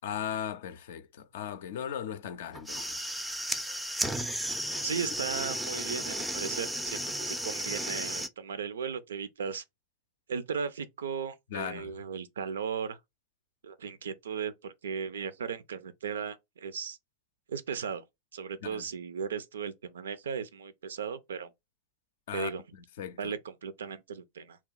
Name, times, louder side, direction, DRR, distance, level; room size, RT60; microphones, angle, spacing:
voice 1, 0.0-3.1 4.7-4.8 11.5-11.9 18.6-18.8 22.3-22.5 23.0-23.3, left 9 dB, 55° left, 0.4 m, -37 dB
sound 1, 2.5-8.3, right 1 dB, 5° right, 0.4 m, -34 dB
voice 2, 4.8-9.6 10.3-13.0 13.6-17.0 17.5-18.0 18.3-21.5 22.3-22.6 23.2-24.6, right 6 dB, 65° right, 0.4 m, -36 dB
2.9 x 2.2 x 3.7 m
figure-of-eight pair, 90°, 0 cm